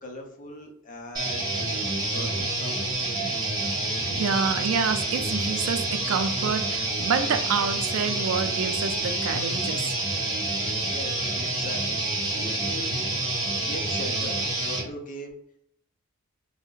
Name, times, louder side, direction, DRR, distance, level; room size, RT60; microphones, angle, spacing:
voice 1, 0.0-2.8 10.8-12.0 12.4-12.9 13.7-15.4, equal, 40° left, 0.6 m, -40 dB
sound 1, 1.1-14.8, right 2 dB, 20° right, 0.8 m, -28 dB
voice 2, 4.1-9.9, right 6 dB, 90° right, 0.4 m, -28 dB
2.5 x 2.1 x 3.6 m
head